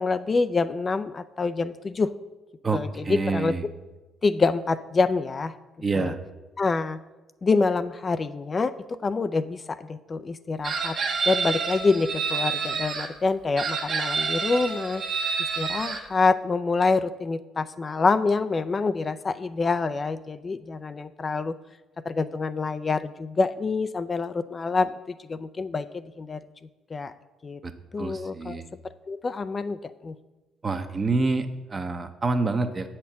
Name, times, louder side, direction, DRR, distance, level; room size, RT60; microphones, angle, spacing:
voice 1, 0.0-2.1 2.7-2.9 3.3-3.5 4.2-5.5 5.9-6.1 6.6-7.0 7.4-11.0 11.3-15.0 15.6-21.5 22.0-26.4 26.9-27.1 27.4-27.6 27.9-28.6 29.1-30.2, left 4 dB, 35° left, 12 dB, 0.4 m, -26 dB
voice 2, 2.6-3.6 5.8-6.2 27.6-27.7 28.0-28.7 30.6-32.9, right 3 dB, 35° right, 8 dB, 0.8 m, -27 dB
Chicken rooster, 10.6-13.1 13.6-16.0, right 5 dB, 55° right, 1.1 m, -28 dB
7.2 x 4.4 x 6.8 m, 1.1 s
supercardioid pair, 60°, 0 cm